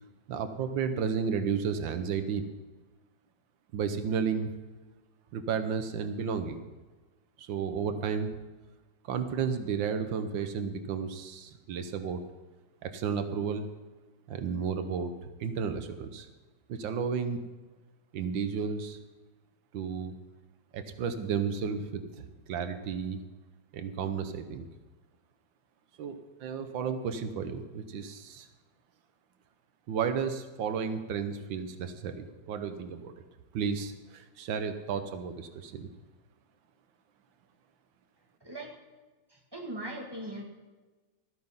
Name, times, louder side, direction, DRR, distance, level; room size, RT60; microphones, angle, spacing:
voice 1, 0.3-2.4 3.7-4.5 5.3-6.6 7.4-8.3 9.1-12.2 12.8-13.7 14.3-15.1 15.4-16.3 16.7-17.4 18.1-19.0 19.7-20.1 20.7-23.2 23.7-24.7 26.0-28.5 29.9-33.1 33.5-35.9, right 6 dB, 90° right, 9 dB, 1.7 m, -32 dB
voice 2, 38.4-38.8 39.3-40.4, right 1 dB, 15° right, 0 dB, 1.7 m, -40 dB
13.5 x 9.3 x 5.6 m, 1.3 s
omnidirectional pair, 2.0 m